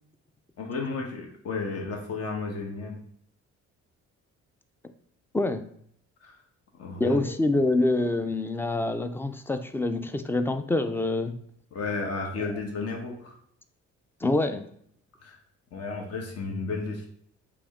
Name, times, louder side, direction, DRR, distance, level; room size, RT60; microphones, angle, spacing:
voice 1, 0.6-3.0 6.2-6.4 6.8-7.2 11.7-13.4 15.2-15.4 15.7-17.1, left 4 dB, 55° left, 1 dB, 1.1 m, -33 dB
voice 2, 5.3-5.6 7.0-11.3 12.4-12.5 14.2-14.7, left 2 dB, 10° left, 9 dB, 0.3 m, -26 dB
4.9 x 2.6 x 3.6 m, 0.66 s
cardioid pair, 90°, 30 cm